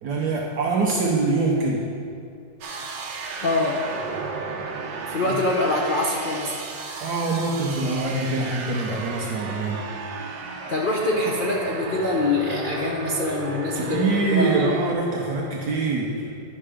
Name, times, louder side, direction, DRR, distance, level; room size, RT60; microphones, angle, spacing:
voice 1, 0.0-1.9 5.2-5.4 7.0-9.9 13.7-16.3, right 3 dB, 65° right, -2 dB, 1.3 m, -24 dB
sound 1, 2.6-14.9, right 4 dB, 85° right, 1.6 m, -34 dB
voice 2, 3.4-3.8 5.1-6.6 10.7-14.7, left 2 dB, 80° left, -2 dB, 0.4 m, -24 dB
10.0 x 5.7 x 4.9 m, 2.6 s
omnidirectional pair, 2.0 m